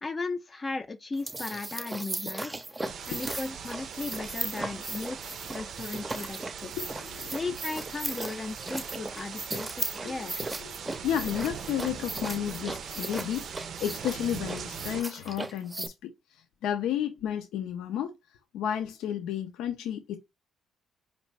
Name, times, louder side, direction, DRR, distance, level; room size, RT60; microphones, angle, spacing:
voice 1, 0.0-6.7 7.3-10.4, left 3 dB, 30° left, 0.5 m, -36 dB
sound 1, 1.1-15.9, right 2 dB, 20° right, 0.6 m, -37 dB
sound 2, 2.8-15.0, right 7 dB, 65° right, 0.5 m, -41 dB
voice 2, 6.8-7.5 10.0-10.1 11.0-13.4 13.8-18.1 18.5-20.2, left 10 dB, 90° left, 0.6 m, -32 dB
4.3 x 2.6 x 3.2 m
cardioid pair, 90°, 0 cm